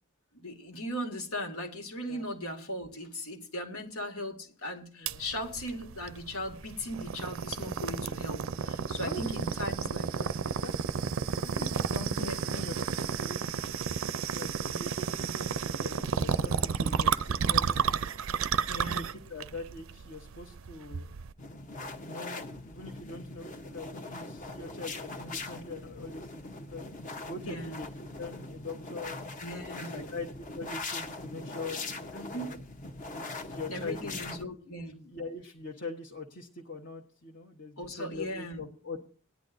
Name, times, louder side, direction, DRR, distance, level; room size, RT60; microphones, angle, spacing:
voice 1, 0.3-10.3 12.2-12.5 18.7-19.1 27.4-27.8 29.4-30.2 32.1-32.6 33.7-35.0 37.8-38.6, equal, 85° left, 4 dB, 2.2 m, -38 dB
sound 1, 5.1-21.3, right 6 dB, 65° right, 0.5 m, -32 dB
voice 2, 8.6-9.5 10.1-11.0 11.3-13.8 14.3-17.8 18.7-21.1 22.0-26.4 26.7-26.9 27.3-29.2 29.8-31.8 32.3-32.6 33.1-34.2 34.7-39.0, left 3 dB, 55° left, 0 dB, 1.3 m, -43 dB
sound 2, 21.4-34.4, left 3 dB, 40° left, 0.9 m, -41 dB
19.0 x 10.5 x 2.6 m, 0.41 s
head